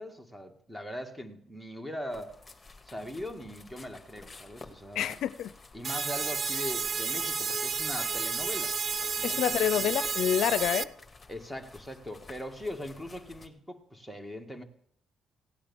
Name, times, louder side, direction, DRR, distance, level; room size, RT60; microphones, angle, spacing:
voice 1, 0.0-2.4 2.9-5.2 5.7-9.9 11.3-14.6, left 1 dB, 5° right, 1.9 m, -40 dB
sound 1, 2.1-13.5, left 3 dB, 15° left, 2.0 m, -52 dB
voice 2, 4.9-5.5 9.2-10.9, left 10 dB, 80° left, 0.5 m, -28 dB
sound 2, 5.8-10.8, right 5 dB, 40° right, 0.5 m, -31 dB
16.5 x 8.8 x 7.1 m
cardioid pair, 90°, 0 cm